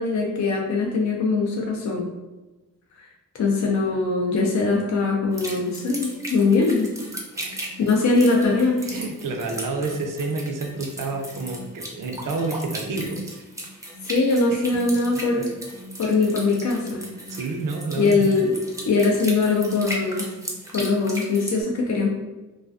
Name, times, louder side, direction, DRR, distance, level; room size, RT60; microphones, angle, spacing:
voice 1, 0.0-2.0 3.0-3.1 3.3-6.9 7.8-8.8 14.0-15.5 16.0-17.1 18.0-18.5 18.9-20.3 20.7-22.1, left 3 dB, 55° left, -1 dB, 0.4 m, -21 dB
sound 1, 5.3-21.6, equal, 10° right, 0.5 m, -36 dB
voice 2, 7.3-7.7 8.8-13.5 14.5-14.7 17.3-18.3, right 3 dB, 70° right, 3 dB, 0.5 m, -29 dB
2.3 x 2.3 x 2.3 m, 1.1 s
wide cardioid pair, 80°, 34 cm